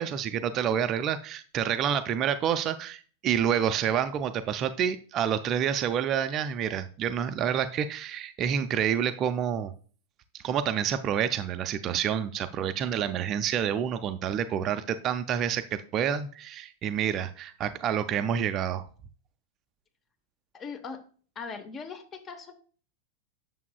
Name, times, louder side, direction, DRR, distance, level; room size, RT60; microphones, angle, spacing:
voice 1, 0.0-9.7 10.3-18.8, right 9 dB, 30° right, 10 dB, 0.5 m, -28 dB
voice 2, 20.5-21.1 21.3-22.5, left 5 dB, 25° left, 8 dB, 1.1 m, -40 dB
8.2 x 7.0 x 2.3 m, 0.41 s
figure-of-eight pair, 90°, 0 cm